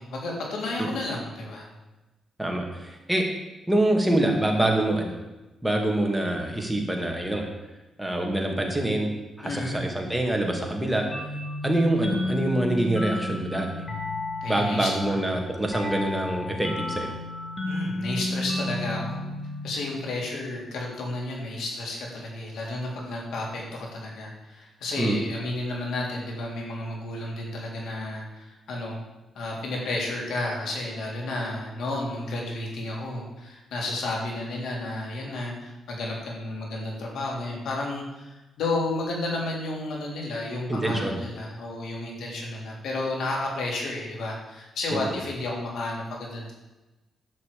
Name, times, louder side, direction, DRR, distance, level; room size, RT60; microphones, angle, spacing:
voice 1, 0.0-1.7 9.4-9.9 14.4-15.3 17.7-19.2 19.6-29.0 29.4-46.5, left 2 dB, 85° left, -1 dB, 3.6 m, -32 dB
voice 2, 2.4-3.2 3.7-5.2 5.6-7.5 8.0-9.1 9.4-11.1 11.6-13.7 14.5-17.1 25.0-25.2 40.7-41.1 44.9-45.0, right 1 dB, 5° right, 1 dB, 2.2 m, -25 dB
sound 1, 11.1-20.5, left 2 dB, 30° left, 2.5 m, -32 dB
11.0 x 6.1 x 8.4 m, 1.1 s
cardioid pair, 125°, 0 cm